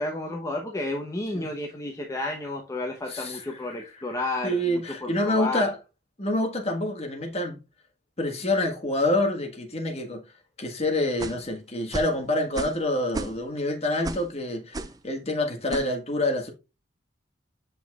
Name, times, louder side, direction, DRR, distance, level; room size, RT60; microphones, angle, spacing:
voice 1, 0.0-5.7, left 2 dB, 15° left, 0.8 m, -31 dB
voice 2, 3.1-3.8 4.4-5.8 6.2-7.6 8.2-10.2 10.6-16.5, left 1 dB, 35° left, 1.5 m, -27 dB
sound 1, 11.2-11.5 11.9-12.2 12.6-12.8 13.1-13.6 14.0-14.3 14.7-15.0 15.7-15.9, right 2 dB, 20° right, 0.5 m, -33 dB
7.6 x 5.6 x 2.4 m
head